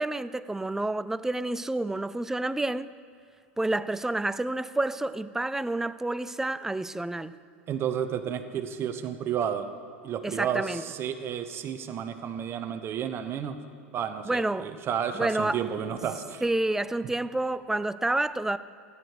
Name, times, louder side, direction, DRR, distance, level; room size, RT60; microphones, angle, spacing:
voice 1, 0.0-2.9 3.6-7.3 10.2-10.8 14.2-14.7 15.1-15.6 16.4-18.6, right 2 dB, 5° right, 15 dB, 0.4 m, -29 dB
voice 2, 7.7-9.7 10.0-13.6 13.9-16.4, right 8 dB, 35° right, 8 dB, 0.9 m, -31 dB
14.0 x 9.8 x 5.0 m, 2.4 s
hypercardioid pair, 95°, 7 cm